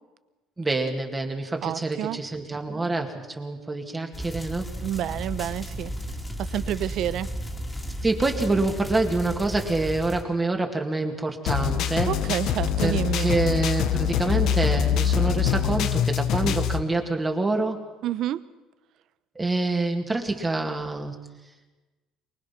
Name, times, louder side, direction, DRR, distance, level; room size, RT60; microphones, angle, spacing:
voice 1, 0.6-4.7 8.0-12.1 12.8-17.8 19.4-21.1, right 2 dB, 15° right, 3 dB, 2.4 m, -26 dB
voice 2, 1.6-2.2 4.8-5.9 6.4-7.3 12.0-13.4 18.0-18.4, right 12 dB, 60° right, 15 dB, 0.8 m, -29 dB
sound 1, 4.1-10.2, equal, 10° left, 2.6 m, -34 dB
sound 2, 11.5-16.8, left 8 dB, 60° left, 1.1 m, -24 dB
24.0 x 19.5 x 6.0 m, 1.2 s
cardioid pair, 115°, 0 cm